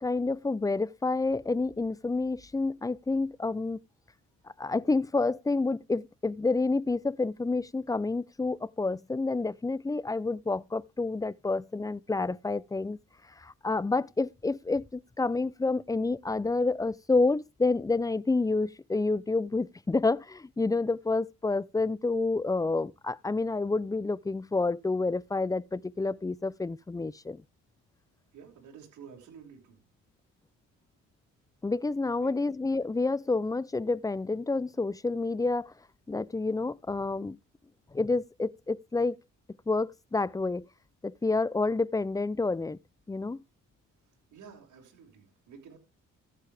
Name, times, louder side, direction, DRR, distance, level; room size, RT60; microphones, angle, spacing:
voice 1, 0.0-3.8 4.6-13.0 13.4-27.4 31.6-35.7 36.1-37.4 37.9-39.2 39.7-40.7 41.0-42.8 43.1-43.4, left 3 dB, 10° left, 0.5 m, -29 dB
voice 2, 28.3-29.8 32.2-32.5 44.3-45.8, right 6 dB, 70° right, 5.9 m, -50 dB
15.0 x 8.5 x 3.5 m
cardioid pair, 90°, 30 cm